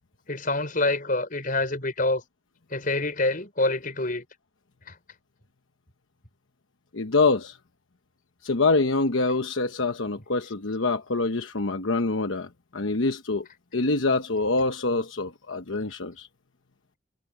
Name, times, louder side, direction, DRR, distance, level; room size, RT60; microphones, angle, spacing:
voice 1, 0.3-2.2 2.7-4.2 4.9-5.0, left 2 dB, 45° left, 5.4 m, -26 dB
voice 2, 6.9-7.6 8.4-13.5 13.7-16.3, left 3 dB, 75° left, 1.0 m, -25 dB
head